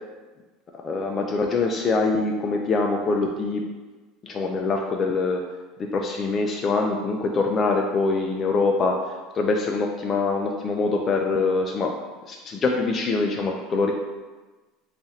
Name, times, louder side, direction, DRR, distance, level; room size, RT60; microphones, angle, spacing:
voice 1, 0.8-3.6 4.2-5.4 5.8-9.0 9.3-11.9 12.3-13.9, left 3 dB, 35° left, 1 dB, 0.3 m, -24 dB
3.0 x 2.4 x 4.1 m, 1.2 s
supercardioid pair, 110°, 0 cm